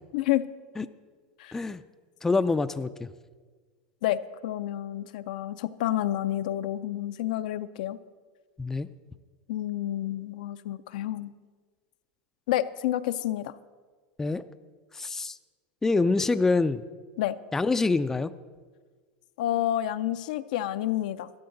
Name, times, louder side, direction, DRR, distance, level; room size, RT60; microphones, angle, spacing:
voice 1, 0.1-0.4 1.4-1.5 4.0-8.0 9.5-11.3 12.5-13.5 17.2-17.4 19.4-21.3, left 13 dB, 75° left, 12 dB, 0.5 m, -29 dB
voice 2, 1.5-1.8 2.2-3.1 8.6-8.9 14.2-14.4 14.9-15.4 15.8-16.8 17.5-18.3, left 3 dB, 10° left, 12 dB, 0.3 m, -25 dB
12.5 x 12.0 x 3.9 m, 1.5 s
supercardioid pair, 125°, 4 cm